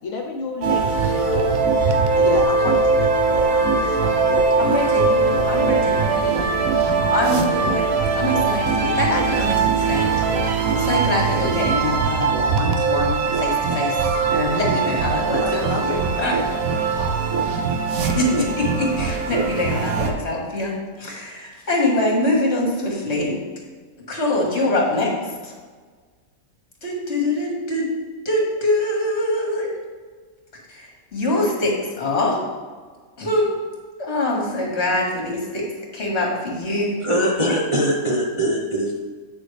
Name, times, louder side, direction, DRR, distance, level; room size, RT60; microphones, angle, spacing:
voice 1, 0.0-4.6 9.1-9.3 15.4-16.9, left 4 dB, 70° left, 1 dB, 1.2 m, -31 dB
sound 1, 0.6-20.1, right 4 dB, 75° right, 1.2 m, -21 dB
voice 2, 4.6-6.6 6.8-10.1 10.7-14.0 14.3-16.4 18.0-23.4 24.1-25.5 26.8-27.9 28.3-29.7 30.7-32.4 33.2-33.5 34.0-35.6 35.9-36.9, left 1 dB, 50° left, -2 dB, 2.0 m, -24 dB
voice 3, 37.0-39.0, equal, 30° right, -3 dB, 0.7 m, -21 dB
8.8 x 6.3 x 3.3 m, 1.5 s
omnidirectional pair, 1.5 m